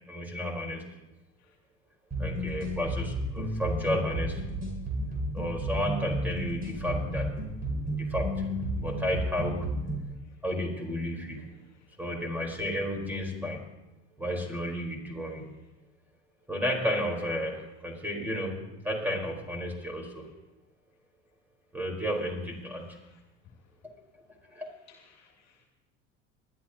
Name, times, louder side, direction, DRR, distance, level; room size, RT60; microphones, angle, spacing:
voice 1, 0.1-0.8 2.2-4.5 5.3-7.3 7.9-8.5 8.8-9.9 10.4-11.5 12.0-13.6 14.2-15.5 16.5-20.2 21.7-23.0 24.5-24.7, equal, 5° right, 1 dB, 4.3 m, -32 dB
sound 1, 2.1-10.1, right 1 dB, 25° right, 5.4 m, -32 dB
voice 2, 11.7-12.0 22.7-23.6 24.5-24.6 24.9-25.6, left 7 dB, 45° left, 0 dB, 2.4 m, -62 dB
21.0 x 12.5 x 2.9 m, 0.98 s
hypercardioid pair, 75°, 38 cm